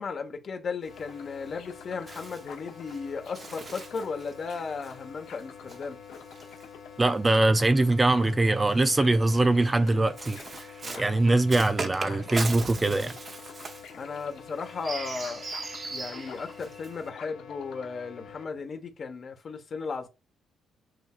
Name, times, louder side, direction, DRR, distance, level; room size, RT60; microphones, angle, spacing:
voice 1, 0.0-6.0 10.8-11.4 13.9-15.5 15.9-20.1, left 5 dB, 45° left, 1.2 m, -36 dB
Bird, 0.8-7.4 8.3-17.1, right 3 dB, 35° right, 0.9 m, -40 dB
sound 1, 0.9-18.4, left 7 dB, 80° left, 0.9 m, -46 dB
voice 2, 7.0-10.4 11.0-13.1, right 2 dB, 20° right, 0.4 m, -22 dB
7.8 x 2.7 x 2.4 m
cardioid pair, 90°, 0 cm